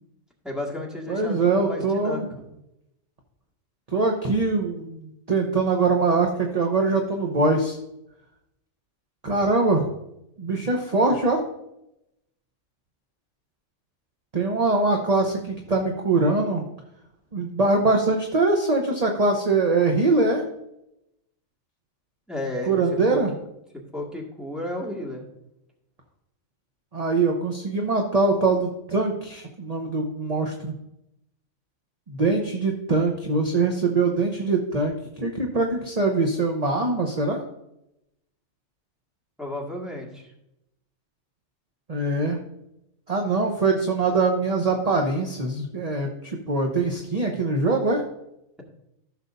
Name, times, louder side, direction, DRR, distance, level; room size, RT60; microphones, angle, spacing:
voice 1, 0.4-2.4 22.3-22.8 23.1-23.2 23.9-25.2 39.4-40.3, left 1 dB, ahead, -2 dB, 1.9 m, -32 dB
voice 2, 1.1-2.3 3.9-7.8 9.2-9.8 10.4-11.4 14.3-16.6 17.3-20.4 22.7-23.3 26.9-30.7 32.1-37.4 41.9-42.4 43.1-48.0, right 3 dB, 35° right, 2 dB, 0.9 m, -23 dB
15.0 x 6.5 x 2.7 m, 0.83 s
omnidirectional pair, 1.4 m